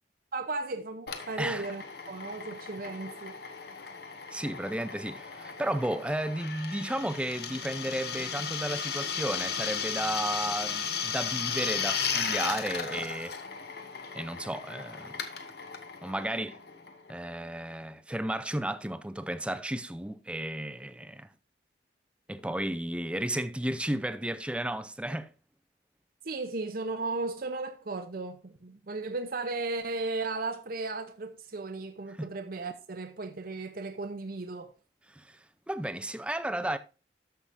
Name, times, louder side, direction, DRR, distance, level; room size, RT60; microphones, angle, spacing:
voice 1, 0.3-3.4 3.6-3.8 26.2-34.7, right 3 dB, 50° right, 0.6 m, -35 dB
Drill, 1.1-17.4, left 6 dB, 60° left, 1.2 m, -36 dB
voice 2, 4.3-13.4 14.1-15.2 16.0-16.6 17.1-21.3 22.3-25.3 32.2-32.3 35.1-35.4 35.7-36.8, right 1 dB, 5° right, 0.5 m, -33 dB
13.0 x 5.7 x 2.6 m
head